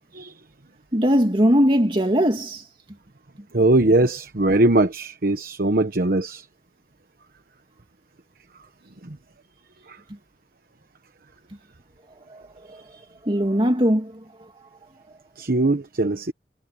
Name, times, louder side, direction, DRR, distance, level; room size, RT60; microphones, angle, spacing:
voice 1, 0.9-2.6 12.3-12.4 12.7-12.8 13.2-14.1, equal, 30° right, 2.5 m, -19 dB
voice 2, 3.5-6.5 9.0-9.2 9.9-10.0 12.7-13.1 15.4-16.3, right 2 dB, 55° right, 1.1 m, -21 dB
head